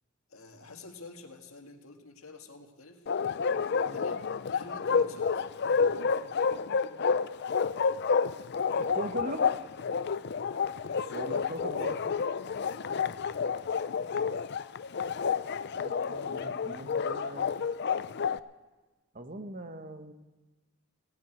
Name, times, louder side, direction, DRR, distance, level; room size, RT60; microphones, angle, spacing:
voice 1, 0.3-3.1 3.4-6.4 10.3-11.2 12.8-13.8, left 3 dB, 85° left, 4 dB, 1.8 m, -50 dB
Bark, 3.1-18.4, left 5 dB, 50° left, 0.4 m, -30 dB
voice 2, 8.8-9.5 11.1-12.0 15.7-17.5 19.1-20.1, right 1 dB, 40° right, 8 dB, 1.1 m, -39 dB
17.5 x 7.7 x 9.2 m, 1.2 s
head